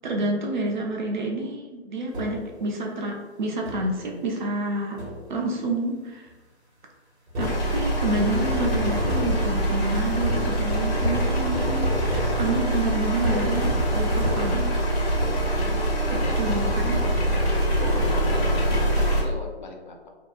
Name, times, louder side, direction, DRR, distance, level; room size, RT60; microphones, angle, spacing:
voice 1, 0.0-5.0 5.3-6.3 7.4-14.7 16.1-17.0, right 2 dB, 45° right, 0 dB, 0.5 m, -29 dB
sound 1, 2.1-2.7 3.7-4.1 5.0-5.5 7.3-15.8 16.1-19.2, left 1 dB, 80° right, 0.9 m, -32 dB
sound 2, 5.9-16.3 16.5-16.6, equal, 85° left, 1.1 m, -40 dB
sound 3, 7.4-19.2, right 1 dB, 65° left, 1.0 m, -24 dB
voice 2, 15.5-15.8 16.1-17.1 17.8-20.1, left 3 dB, 45° left, 3 dB, 0.4 m, -38 dB
2.7 x 2.3 x 2.3 m, 1.3 s
hypercardioid pair, 150°, 33 cm